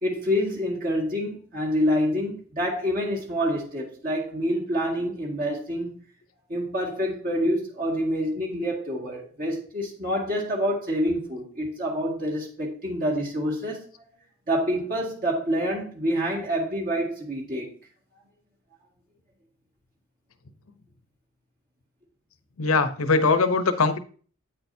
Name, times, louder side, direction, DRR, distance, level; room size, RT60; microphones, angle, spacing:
voice 1, 0.0-5.9 6.5-13.9 14.5-17.7, equal, 45° right, 1.9 m, -27 dB
voice 2, 22.6-24.0, left 4 dB, 80° left, 0.8 m, -21 dB
8.8 x 8.7 x 2.7 m
head